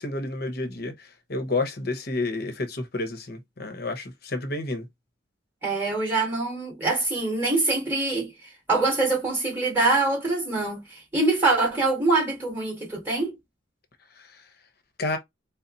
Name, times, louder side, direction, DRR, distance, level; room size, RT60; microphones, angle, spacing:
voice 1, 0.0-4.9 14.2-14.3 15.0-15.2, left 2 dB, 50° left, 0.8 m, -30 dB
voice 2, 5.6-8.3 8.7-13.4, right 2 dB, 10° right, 2.1 m, -24 dB
4.1 x 2.0 x 3.9 m
head